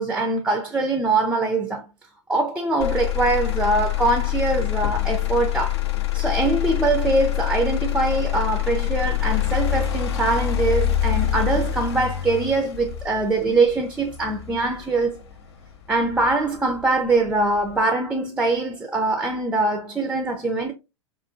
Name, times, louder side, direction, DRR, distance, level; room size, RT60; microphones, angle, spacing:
voice 1, 0.0-1.9 2.3-5.8 6.1-15.2 15.9-20.7, right 2 dB, 5° right, 0.4 m, -23 dB
Motor vehicle (road), 2.8-16.8 17.3-17.8, left 13 dB, 60° left, 0.5 m, -25 dB
4.7 x 2.4 x 2.4 m
figure-of-eight pair, 90°, 16 cm